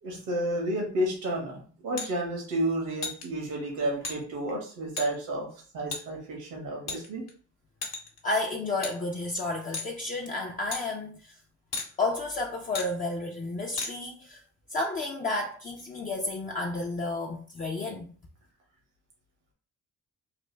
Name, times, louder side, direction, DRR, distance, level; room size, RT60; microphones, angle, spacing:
voice 1, 0.0-5.5 5.7-7.2, right 1 dB, 85° right, 1.4 m, -31 dB
sound 1, 2.0-2.1 3.0-3.2 4.0-4.2 5.0-5.1 5.9-6.0 6.9-7.3 7.8-8.2 8.8-8.9 9.7-9.9 10.7-10.8 11.7-11.9 12.7-12.9 13.8-13.9, left 4 dB, 60° left, 1.0 m, -34 dB
voice 2, 8.2-11.4 12.0-14.4 14.7-18.1, left 2 dB, 25° left, 0.5 m, -31 dB
3.3 x 2.5 x 3.3 m
cardioid pair, 90°, 30 cm